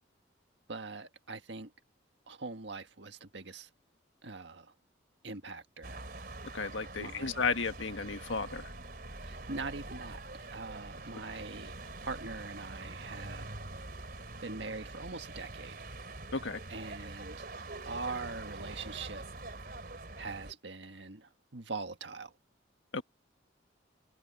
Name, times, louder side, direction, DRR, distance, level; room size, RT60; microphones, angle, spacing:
voice 1, 0.7-1.7 2.3-3.7 4.2-4.7 5.2-6.0 7.0-7.4 9.2-10.2 10.5-11.7 12.0-13.5 14.4-15.9 16.7-17.4 17.8-19.2 20.2-22.3, right 3 dB, 70° right, 1.7 m, -42 dB
sound 1, 5.8-20.5, right 2 dB, 50° right, 3.6 m, -45 dB
voice 2, 6.5-8.7 16.3-16.6 22.9-23.0, left 4 dB, 85° left, 1.6 m, -33 dB
head